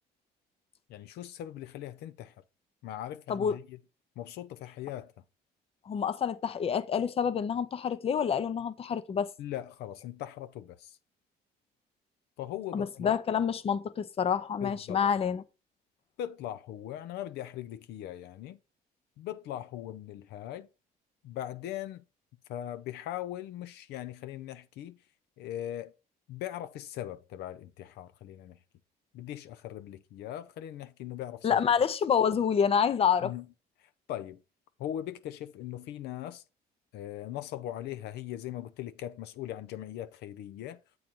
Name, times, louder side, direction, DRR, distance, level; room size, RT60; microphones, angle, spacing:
voice 1, 0.9-2.4 2.8-3.8 4.2-5.1 9.4-11.0 12.4-13.2 14.6-15.1 16.2-18.6 19.2-20.7 21.2-22.0 22.5-25.0 25.4-25.9 26.3-28.6 29.1-31.6 33.2-33.5 33.8-34.4 34.8-36.4 36.9-40.8, left 12 dB, 80° left, 0.5 m, -40 dB
voice 2, 5.9-9.3 12.7-15.4 31.4-33.3, left 7 dB, 35° left, 0.6 m, -27 dB
7.5 x 3.9 x 4.4 m
cardioid pair, 110°, 17 cm